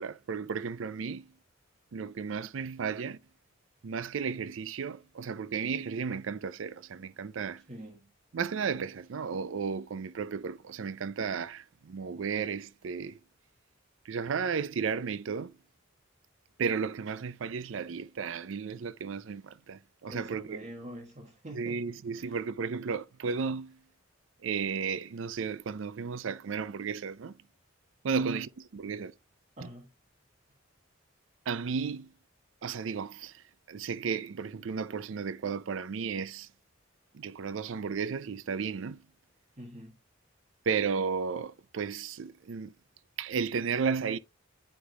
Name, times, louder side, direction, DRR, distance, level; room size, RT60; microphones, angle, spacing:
voice 1, 0.0-1.3 1.9-3.2 3.8-7.6 8.3-13.2 14.0-15.6 16.6-20.6 21.5-23.8 24.4-27.4 28.0-29.1 29.6-29.7 31.5-32.1 32.6-36.5 37.1-39.0 40.7-42.7 43.2-44.2, right 5 dB, 70° right, 0.5 m, -34 dB
voice 2, 7.7-8.1 20.1-21.8 22.1-22.4 28.1-28.4 29.6-29.9 39.6-40.0, equal, 35° right, 1.5 m, -45 dB
9.8 x 4.9 x 2.8 m
head